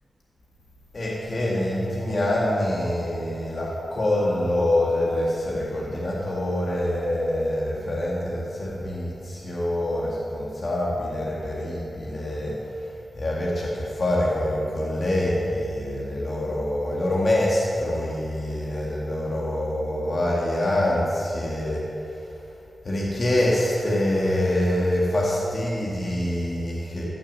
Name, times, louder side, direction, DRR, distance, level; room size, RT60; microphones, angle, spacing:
voice 1, 0.9-12.6 13.2-21.8 22.8-27.0, left 1 dB, 35° left, -4 dB, 2.0 m, -25 dB
15.0 x 7.1 x 7.5 m, 2.6 s
wide cardioid pair, 175°, 0 cm